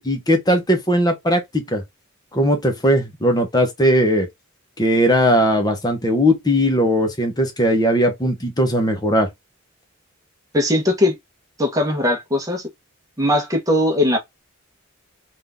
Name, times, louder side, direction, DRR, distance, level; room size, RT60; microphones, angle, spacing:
voice 1, 0.0-1.8 2.3-4.3 4.8-9.3, equal, 20° left, 1.0 m, -18 dB
voice 2, 10.5-11.2 11.6-12.7 13.2-14.2, left 1 dB, 15° right, 1.1 m, -19 dB
3.7 x 2.6 x 3.6 m
head